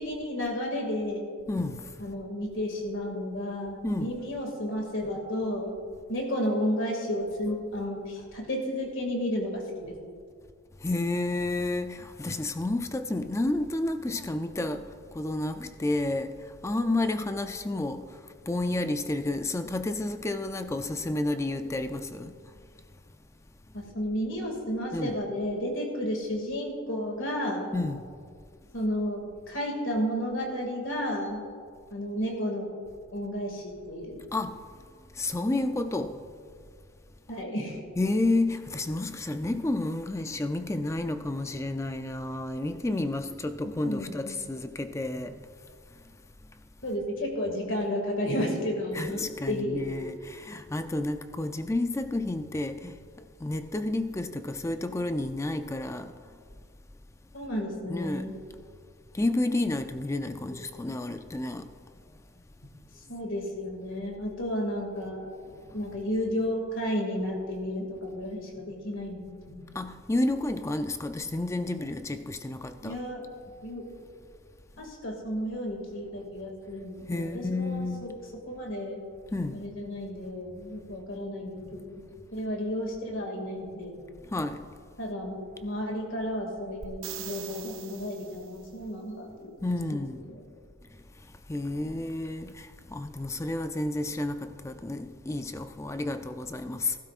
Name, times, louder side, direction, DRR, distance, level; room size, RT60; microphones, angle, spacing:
voice 1, 0.0-1.3 2.0-5.7 6.1-9.9 23.7-27.7 28.7-31.4 31.9-32.7 33.1-34.2 37.3-37.8 43.8-44.4 46.8-49.8 57.3-58.4 63.0-65.3 65.7-69.7 72.8-73.2 73.6-73.8 74.8-78.1 78.4-79.0 79.5-82.0 82.3-84.0 85.0-90.0 90.3-90.4, equal, 60° left, 2.2 m, -32 dB
voice 2, 1.5-1.9 3.8-4.2 10.8-18.2 18.5-22.4 24.9-25.1 27.7-28.1 34.3-34.6 35.1-36.2 38.0-45.4 48.9-53.0 53.4-56.2 57.9-58.3 59.1-61.7 69.7-73.0 77.1-78.1 79.3-79.6 84.3-84.7 89.6-90.2 91.5-97.0, left 2 dB, 15° left, 0.4 m, -31 dB
sound 1, 86.8-88.7 92.5-92.6, right 11 dB, 65° right, 0.6 m, -42 dB
18.5 x 12.0 x 2.5 m
head